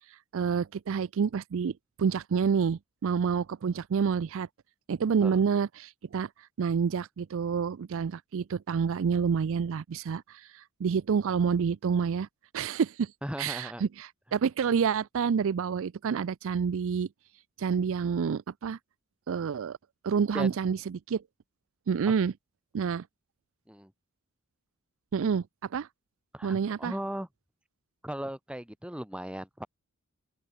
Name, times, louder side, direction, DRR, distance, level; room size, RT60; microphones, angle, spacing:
voice 1, 0.1-4.5 4.9-12.3 12.5-13.1 13.4-17.1 17.6-18.8 19.3-19.8 20.0-21.2 21.9-22.3 22.7-23.1 25.1-25.9 26.4-26.9, right 6 dB, 65° right, 0.4 m, -28 dB
voice 2, 13.2-13.8 20.3-20.5 23.7-23.9 26.3-27.3 28.0-29.7, equal, 5° right, 1.4 m, -37 dB
open air
head